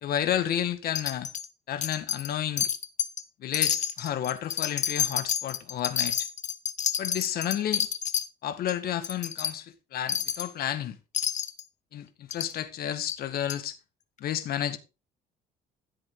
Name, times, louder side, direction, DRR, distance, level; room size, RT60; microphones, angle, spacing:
voice 1, 0.0-1.3 1.7-2.7 3.4-6.3 7.0-7.9 8.4-11.0 11.9-13.8 14.2-14.8, left 10 dB, 65° left, 1.8 m, -31 dB
Wind chime, 0.9-1.5 1.8-2.3 2.6-3.2 3.5-8.3 8.7-8.8 9.0-9.5 10.1-10.5 11.1-11.6 12.3-12.5 13.1-13.2 13.5-13.6, left 8 dB, 45° left, 1.2 m, -29 dB
14.0 x 7.8 x 4.0 m
cardioid pair, 110°, 17 cm